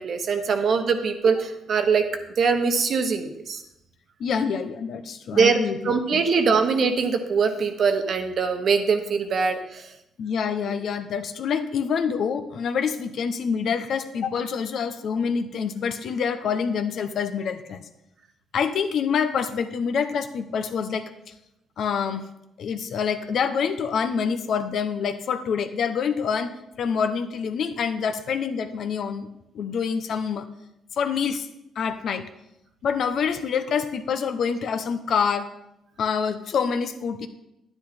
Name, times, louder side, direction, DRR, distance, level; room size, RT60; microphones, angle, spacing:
voice 1, 0.0-2.0 2.4-3.6 5.3-5.6 5.8-9.9, right 5 dB, 55° right, 7 dB, 1.2 m, -22 dB
voice 2, 4.2-6.2 10.2-17.8 18.5-21.1 21.8-22.2 22.6-26.5 26.8-29.3 29.5-30.5 31.0-31.5 31.8-32.3 32.8-35.5 36.0-37.3, left 6 dB, 65° left, 9 dB, 0.9 m, -26 dB
10.0 x 9.9 x 4.3 m, 0.86 s
cardioid pair, 90°, 0 cm